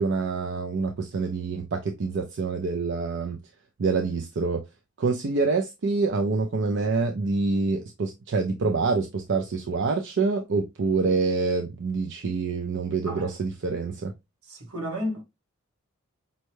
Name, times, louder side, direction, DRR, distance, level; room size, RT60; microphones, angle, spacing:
voice 1, 0.0-3.4 3.8-4.6 5.0-14.1, right 4 dB, 55° right, 0.4 m, -26 dB
voice 2, 14.4-15.2, equal, 75° right, 1.8 m, -32 dB
5.3 x 2.2 x 3.0 m
head